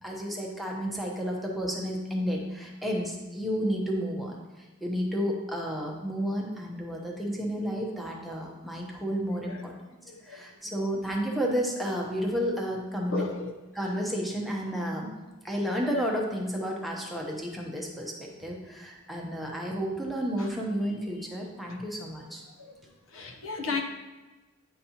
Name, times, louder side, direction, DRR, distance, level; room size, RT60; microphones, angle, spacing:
voice 1, 0.0-9.7 10.2-13.2 13.7-15.1 15.4-22.4, equal, ahead, -2 dB, 0.8 m, -31 dB
voice 2, 9.3-9.6 10.1-10.7 13.1-13.5 20.4-20.5 21.7-21.8 22.6-22.8 23.1-23.8, left 3 dB, 70° left, 3 dB, 0.7 m, -35 dB
9.0 x 4.1 x 2.8 m, 1.2 s
head